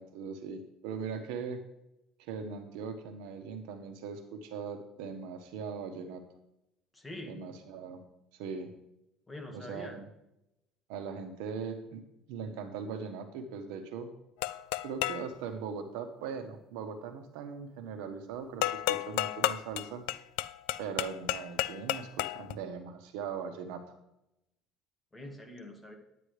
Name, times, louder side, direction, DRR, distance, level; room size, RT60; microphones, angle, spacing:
voice 1, 0.0-1.6 2.2-6.2 7.3-8.0 8.3-8.7 9.5-10.1 10.9-12.0 12.3-14.1 14.8-20.1 20.8-23.8, right 6 dB, 90° right, 7 dB, 1.2 m, -40 dB
voice 2, 6.9-7.5 9.3-10.0 25.1-26.0, left 1 dB, 10° left, 3 dB, 1.6 m, -44 dB
sound 1, 14.4-15.3 18.6-22.5, left 16 dB, 85° left, 0.3 m, -32 dB
9.8 x 9.8 x 3.3 m, 0.86 s
cardioid pair, 135°, 0 cm